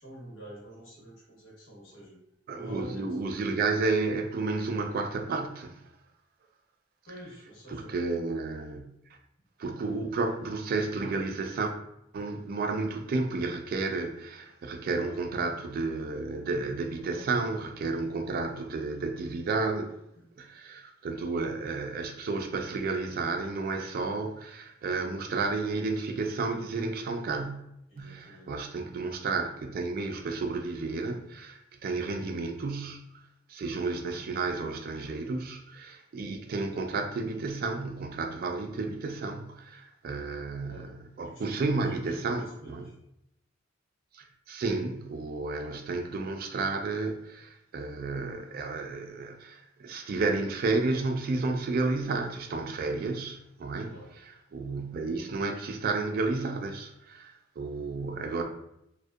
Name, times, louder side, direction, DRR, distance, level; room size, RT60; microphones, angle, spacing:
voice 1, 0.0-2.2 2.5-3.2 7.1-8.0 14.8-15.2 16.9-17.3 20.1-20.5 27.9-28.6 40.6-40.9 41.2-43.0 53.8-54.1, right 1 dB, 80° left, 0.9 m, -46 dB
voice 2, 2.5-5.8 7.7-9.0 9.6-11.7 12.1-20.0 20.4-27.7 28.0-33.0 33.5-42.8 44.1-53.9 54.3-58.4, right 3 dB, 50° right, 0.3 m, -32 dB
2.6 x 2.1 x 2.2 m
head